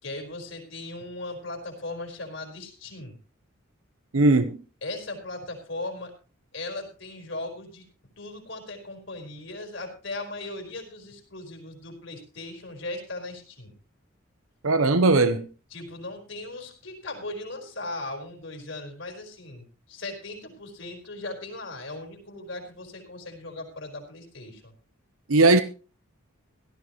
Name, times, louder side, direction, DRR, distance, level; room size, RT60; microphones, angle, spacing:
voice 1, 0.0-3.2 4.8-6.1 6.5-7.8 8.2-13.7 15.7-24.7, left 2 dB, 65° left, 4.6 m, -38 dB
voice 2, 4.1-4.6 14.6-15.5 25.3-25.6, right 3 dB, 90° right, 0.9 m, -19 dB
17.0 x 13.0 x 3.1 m
head